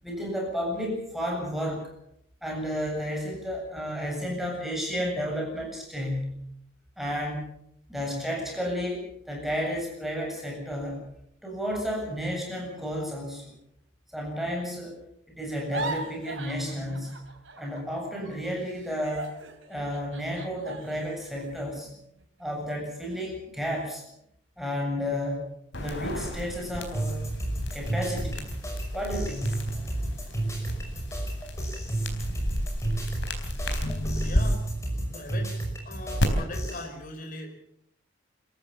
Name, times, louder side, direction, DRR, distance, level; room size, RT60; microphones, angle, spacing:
voice 1, 0.0-1.8 2.4-6.4 7.0-7.5 7.9-11.0 11.4-13.5 14.1-15.0 15.3-17.1 17.6-19.3 19.7-21.9 22.4-24.0 24.6-25.4 25.8-27.2 27.7-28.5 28.9-29.7, equal, ahead, -1 dB, 7.6 m, -32 dB
sound 1, 15.5-18.0 18.2-22.6 23.1-23.3 23.7-24.2, right 3 dB, 85° right, 3.4 m, -40 dB
sound 2, 25.7-34.4 36.2-36.3, left 1 dB, 65° left, 4.0 m, -32 dB
sound 3, 26.9-36.8, right 1 dB, 15° left, 5.9 m, -32 dB
voice 2, 33.9-34.7 35.1-35.6 35.8-37.6, left 2 dB, 45° left, 3 dB, 3.9 m, -40 dB
27.0 x 14.5 x 7.2 m, 0.75 s
head